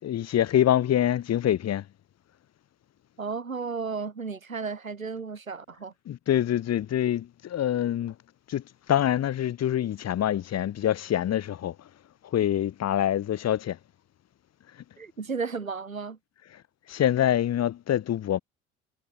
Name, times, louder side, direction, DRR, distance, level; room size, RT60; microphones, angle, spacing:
voice 1, 0.0-1.8 6.1-8.1 8.5-8.6 8.9-11.7 12.3-13.8 16.9-18.4, left 11 dB, 40° left, 4.8 m, -25 dB
voice 2, 3.2-5.9 15.0-16.2, right 5 dB, 85° right, 3.2 m, -33 dB
figure-of-eight pair, 65°, 40 cm